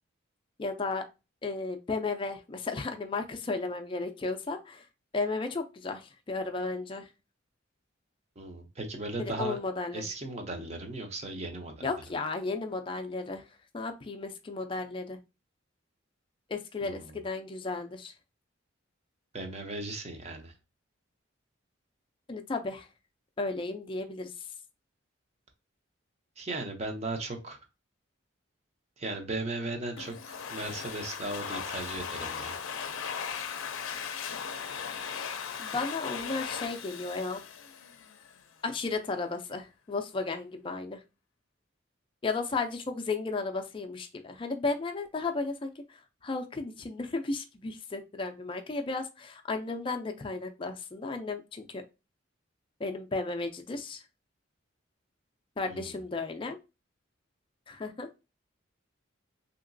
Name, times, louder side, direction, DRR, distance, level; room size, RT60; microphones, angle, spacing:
voice 1, 0.6-1.0 1.4-4.9 5.1-7.1 9.2-10.1 11.8-15.2 16.5-18.1 22.3-22.9 23.4-24.5 35.6-37.4 38.6-41.0 42.2-51.8 52.8-54.0 55.6-56.6 57.7-58.1, left 3 dB, 25° left, 5 dB, 0.4 m, -34 dB
voice 2, 8.4-9.6 9.9-11.9 16.8-17.1 19.3-20.5 26.4-27.6 29.0-32.6 55.7-55.9, right 2 dB, 35° right, 3 dB, 0.6 m, -37 dB
Domestic sounds home sounds, 30.0-38.4, left 7 dB, 90° left, 0.5 m, -38 dB
3.0 x 2.8 x 2.6 m, 0.28 s
head